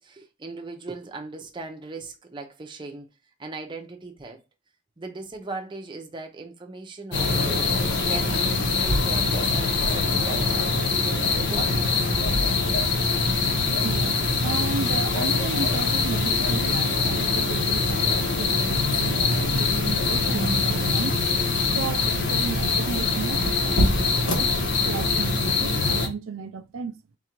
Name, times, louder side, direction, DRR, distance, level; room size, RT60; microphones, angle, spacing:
voice 1, 0.0-3.1 3.4-4.4 5.0-12.1, right 3 dB, 25° right, 0.6 m, -38 dB
sound 1, 7.1-26.1, left 3 dB, 60° left, 1.0 m, -23 dB
sound 2, 12.2-25.3, equal, 80° left, 1.2 m, -34 dB
voice 2, 13.8-21.2 21.7-24.6 24.9-27.0, right 5 dB, 85° right, 0.5 m, -34 dB
3.9 x 2.5 x 4.4 m
head